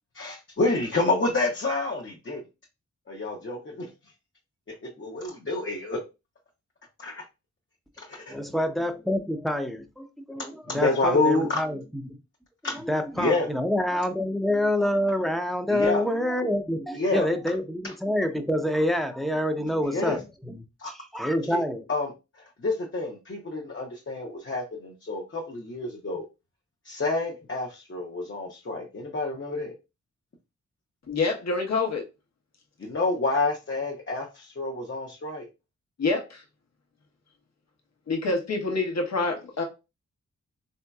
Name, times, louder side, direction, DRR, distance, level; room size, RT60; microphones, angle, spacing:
voice 1, 0.1-2.4 3.1-3.9 4.7-6.0 7.0-7.2 8.0-8.3 10.7-11.6 12.6-12.8 13.2-13.5 15.7-16.1 16.9-17.3 19.8-20.2 20.8-20.9 21.5-21.6 21.9-26.3 26.8-29.7 32.8-35.5, left 3 dB, 45° left, 0.8 m, -28 dB
voice 2, 8.3-12.2 12.8-20.6 20.9-21.8, left 1 dB, ahead, 0.6 m, -27 dB
voice 3, 31.1-32.0 36.0-36.4 38.1-39.6, left 3 dB, 65° left, 1.1 m, -26 dB
3.6 x 2.7 x 2.3 m
cardioid pair, 50°, 29 cm